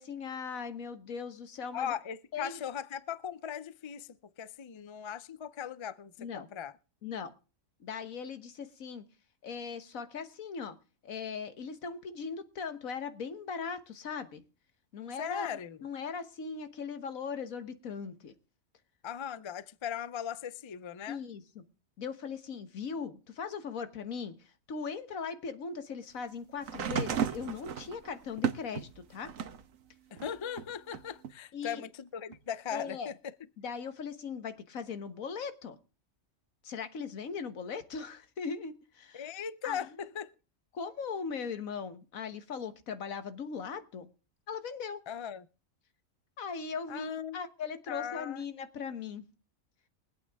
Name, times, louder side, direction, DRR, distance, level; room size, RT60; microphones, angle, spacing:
voice 1, 0.0-1.9 2.3-2.6 6.2-6.5 7.0-7.3 7.8-9.0 9.4-10.8 11.0-14.4 14.9-15.5 15.8-18.3 21.1-21.6 22.0-24.4 24.7-29.3 31.5-31.8 32.7-33.1 33.6-35.8 36.6-39.3 39.6-39.8 40.7-44.1 44.5-45.0 46.4-49.2, left 5 dB, 90° left, 1.7 m, -39 dB
voice 2, 1.7-4.1 4.4-6.7 15.2-15.8 19.0-21.2 30.1-33.3 39.1-40.3 45.1-45.5 46.9-47.4 47.9-48.4, left 8 dB, 40° left, 0.4 m, -38 dB
sound 1, 26.6-29.7 30.2-31.3 32.3-32.4, right 7 dB, 80° right, 1.4 m, -34 dB
23.0 x 8.6 x 3.5 m
omnidirectional pair, 1.4 m